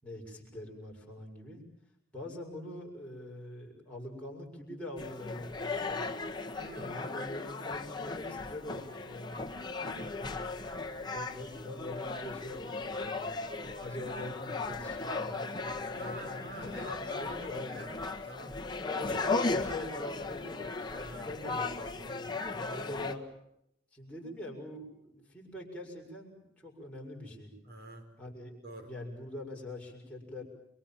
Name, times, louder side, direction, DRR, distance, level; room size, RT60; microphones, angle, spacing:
voice 1, 0.0-1.6 2.1-6.2 6.7-9.4 10.1-13.3 13.8-17.8 18.8-22.3 22.7-23.2 23.9-27.5 28.2-30.4, left 1 dB, 5° left, -2 dB, 6.8 m, -44 dB
sound 1, 5.0-23.2, left 3 dB, 25° left, 1.6 m, -37 dB
voice 2, 6.6-6.9 9.8-10.2 15.9-17.9 18.2-18.6 21.0-21.3 22.5-23.0 27.6-28.1 28.6-28.9, equal, 55° right, 7 dB, 4.5 m, -46 dB
29.0 x 24.0 x 7.5 m, 0.77 s
head